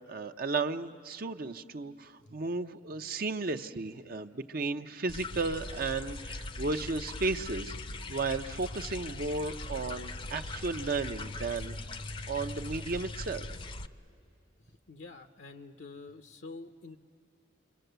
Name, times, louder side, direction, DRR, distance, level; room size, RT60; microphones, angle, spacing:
voice 1, 0.0-7.7 8.1-11.8 12.3-13.5, right 3 dB, 50° right, 7 dB, 0.6 m, -34 dB
sound 1, 5.1-13.9, left 2 dB, 30° left, 0.6 m, -40 dB
voice 2, 14.7-17.0, left 3 dB, 70° left, 7 dB, 0.8 m, -47 dB
28.5 x 24.5 x 8.0 m, 2.6 s
head